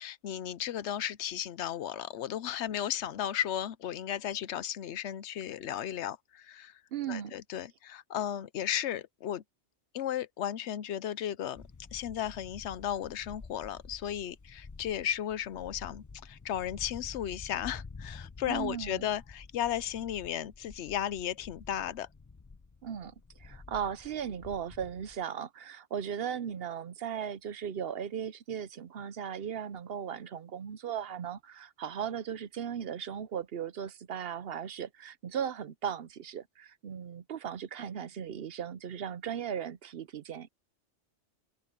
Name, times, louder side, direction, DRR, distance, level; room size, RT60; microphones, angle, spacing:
voice 1, 0.0-6.7 7.1-9.4 9.9-11.6 11.9-22.1, left 10 dB, 75° left, 0.9 m, -35 dB
voice 2, 6.9-7.3 18.5-19.0 22.8-40.5, right 8 dB, 65° right, 0.8 m, -37 dB
sound 1, 11.5-25.2, left 4 dB, 30° left, 0.4 m, -50 dB
open air
omnidirectional pair, 1.2 m